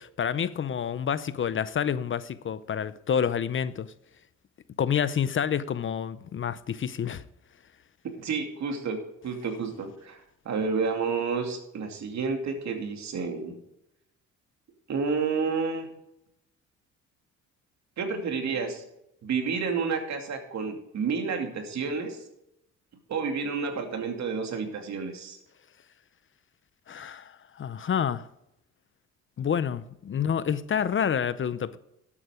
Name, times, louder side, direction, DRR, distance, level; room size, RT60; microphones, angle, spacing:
voice 1, 0.0-3.9 4.8-7.2 26.9-28.3 29.4-31.8, left 8 dB, 40° left, 0.7 m, -28 dB
voice 2, 8.2-9.0 9.2-13.6 14.9-15.9 18.0-18.8 19.2-22.2 23.1-25.4, right 5 dB, 65° right, 2.6 m, -30 dB
12.0 x 8.6 x 5.0 m
cardioid pair, 90°, 30 cm